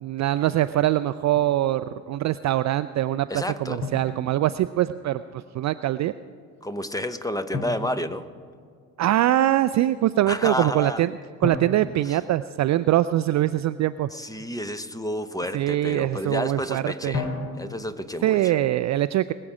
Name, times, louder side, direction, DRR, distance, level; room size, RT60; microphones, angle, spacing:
voice 1, 0.0-3.3 3.6-6.1 9.0-11.1 11.4-14.1 15.5-17.1 18.2-19.3, right 13 dB, 40° right, 13 dB, 0.4 m, -23 dB
Drum, 1.4-1.6 3.8-5.0 7.5-8.9 11.4-13.1 17.1-18.1, left 3 dB, 55° left, 2.7 m, -34 dB
voice 2, 3.3-3.8 6.6-8.2 10.3-11.0 12.0-12.2 14.1-17.3 17.6-18.5, left 1 dB, 10° left, 11 dB, 0.9 m, -30 dB
22.5 x 7.8 x 4.9 m, 2.2 s
hypercardioid pair, 60°, 46 cm